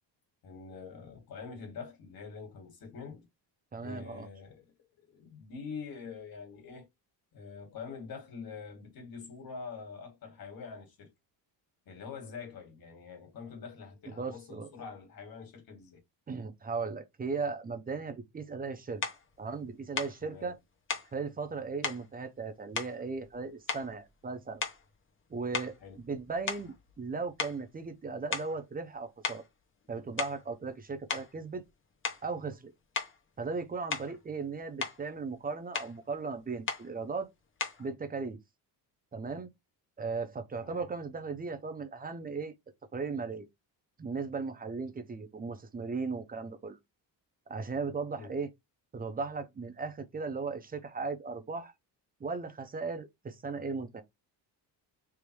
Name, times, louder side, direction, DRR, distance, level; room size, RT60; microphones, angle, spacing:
voice 1, 0.4-3.3 3.8-6.9 7.3-11.1 11.9-16.0 20.2-20.5 25.8-26.0 40.6-40.9 48.1-48.3, left 5 dB, 55° left, 2.0 m, -45 dB
voice 2, 3.7-4.3 14.1-14.7 16.3-19.0 19.4-20.6 21.1-24.6 25.3-29.4 29.9-31.6 32.2-32.7 33.4-37.3 37.8-38.4 39.1-39.5 40.0-42.5 42.9-43.5 44.0-46.8 47.5-48.5 48.9-51.7 52.2-54.0, right 4 dB, 20° right, 0.6 m, -37 dB
sound 1, 19.0-19.2 20.0-20.2 20.9-21.1 21.8-22.1 22.8-23.4 23.7-24.1 24.6-24.9 25.5-27.1 27.4-27.6 28.3-28.6 29.2-29.5 30.0-30.5 31.1-31.3 32.0-32.3 32.9-33.2 33.9-34.2 34.6-35.0 35.7-36.0 36.7-36.9 37.6-37.9, left 5 dB, 30° left, 0.8 m, -36 dB
3.5 x 2.6 x 4.6 m
cardioid pair, 150°, 41 cm